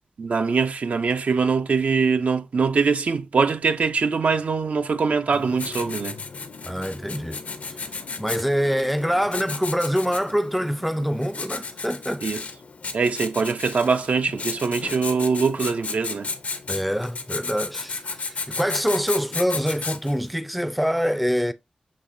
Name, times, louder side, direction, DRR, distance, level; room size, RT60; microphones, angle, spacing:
voice 1, 0.2-6.2 12.2-12.4 12.9-16.3, right 5 dB, 70° right, 0.4 m, -23 dB
Writing, 5.3-20.3, left 4 dB, 75° left, 0.6 m, -34 dB
voice 2, 6.6-7.4 8.2-12.2 16.7-21.5, equal, ahead, 0.3 m, -25 dB
6.5 x 2.9 x 2.5 m
wide cardioid pair, 80°, 2 cm